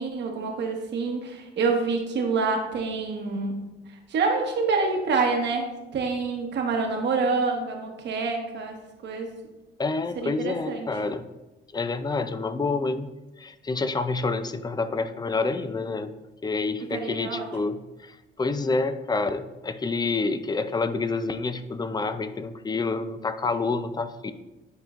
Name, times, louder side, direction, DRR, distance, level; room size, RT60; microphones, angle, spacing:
voice 1, 0.0-3.7 4.1-9.3 10.2-10.9 16.9-17.5, right 4 dB, 65° right, 2 dB, 1.2 m, -27 dB
voice 2, 9.8-11.3 11.7-13.1 13.4-16.1 16.4-24.3, left 3 dB, 20° left, 11 dB, 0.4 m, -28 dB
9.3 x 4.4 x 2.5 m, 1.0 s
cardioid pair, 90°, 20 cm